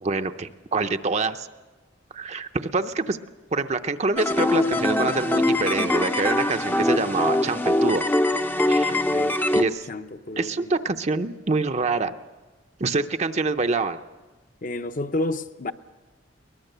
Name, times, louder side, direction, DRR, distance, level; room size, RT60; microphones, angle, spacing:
voice 1, 0.0-1.5 2.1-3.2 3.5-8.1 8.7-9.0 9.5-9.9 10.4-12.1 12.8-14.0, right 3 dB, 35° right, 0.6 m, -25 dB
sound 1, 4.2-9.6, left 1 dB, 10° left, 0.6 m, -23 dB
voice 2, 8.9-10.7 14.6-15.7, left 2 dB, 45° left, 0.8 m, -31 dB
22.5 x 19.5 x 6.7 m
head